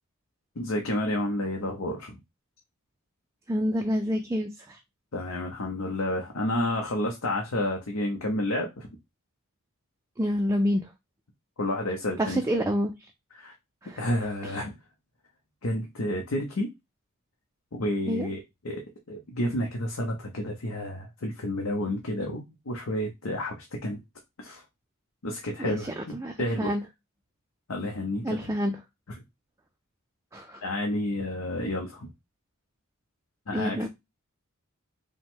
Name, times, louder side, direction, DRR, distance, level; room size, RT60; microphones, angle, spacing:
voice 1, 0.6-2.2 5.1-8.9 11.6-12.6 13.3-13.5 14.0-14.7 15.6-16.7 17.7-18.4 18.6-18.8 19.1-24.0 24.4-24.6 25.2-26.7 27.7-28.5 30.6-32.1 33.5-33.8, left 1 dB, 70° left, 0.8 m, -30 dB
voice 2, 3.5-4.8 10.2-10.9 12.2-12.9 13.8-14.1 14.4-14.6 18.1-18.3 25.6-26.8 28.2-28.8 30.3-30.6 33.5-33.9, equal, 15° right, 0.4 m, -28 dB
5.2 x 2.1 x 3.6 m
head